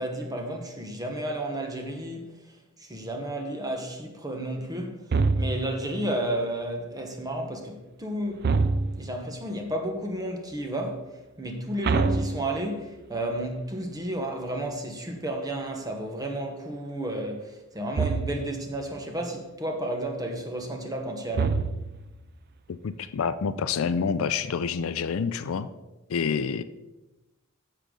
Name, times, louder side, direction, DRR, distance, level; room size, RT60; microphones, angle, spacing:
voice 1, 0.0-2.2 2.8-11.0 11.4-21.6, right 1 dB, 20° right, 1.1 m, -32 dB
sound 1, 5.1-5.9 8.4-9.2 11.8-13.0 17.9-18.6 21.3-22.2, right 4 dB, 50° right, 0.4 m, -26 dB
voice 2, 22.7-25.7 26.1-26.6, left 6 dB, 70° left, 0.4 m, -28 dB
9.9 x 6.7 x 3.8 m
head